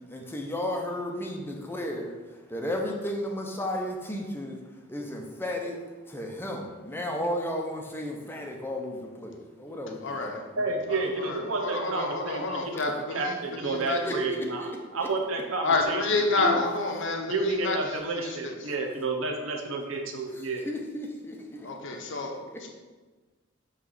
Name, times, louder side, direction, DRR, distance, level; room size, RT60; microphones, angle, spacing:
voice 1, 0.1-4.6 4.9-5.8 6.1-10.4 10.9-11.0 14.0-14.7 15.0-15.1 20.3-22.2 22.5-22.7, left 1 dB, 10° left, 1 dB, 0.8 m, -34 dB
voice 2, 10.0-10.3 10.9-14.2 15.6-18.7 21.6-22.4 22.6-22.7, left 3 dB, 65° left, 2 dB, 0.8 m, -29 dB
voice 3, 10.6-16.5 17.3-20.7, right 3 dB, 75° right, 2 dB, 0.9 m, -31 dB
8.5 x 3.3 x 4.0 m, 1.3 s
head